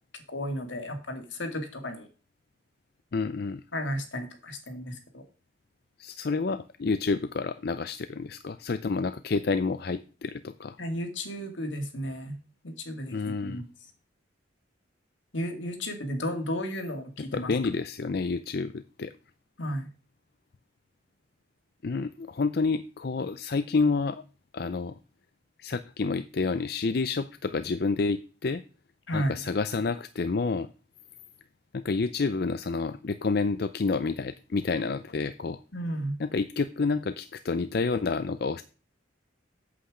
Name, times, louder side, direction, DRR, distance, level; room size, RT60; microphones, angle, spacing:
voice 1, 0.1-2.1 3.7-5.2 10.8-12.4 12.6-13.2 13.4-13.6 15.3-17.5 19.6-19.9 29.1-29.4 35.7-36.2, equal, 80° left, 6 dB, 2.2 m, -33 dB
voice 2, 3.1-3.6 6.0-10.8 13.1-13.6 17.3-19.1 21.8-24.2 24.5-25.0 25.6-28.6 29.1-30.7 31.7-35.6 36.2-38.6, left 4 dB, 55° left, 12 dB, 0.5 m, -29 dB
8.5 x 7.9 x 5.0 m, 0.35 s
head